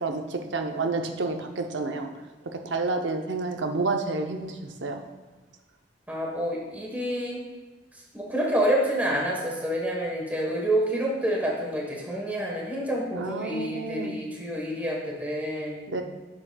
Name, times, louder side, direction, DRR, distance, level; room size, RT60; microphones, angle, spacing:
voice 1, 0.0-2.1 2.5-5.0 13.1-14.2 15.9-16.0, right 3 dB, 70° right, 5 dB, 0.7 m, -29 dB
voice 2, 6.1-7.4 8.1-15.8, right 1 dB, 10° right, -3 dB, 1.1 m, -28 dB
8.8 x 6.2 x 2.3 m, 1.3 s
head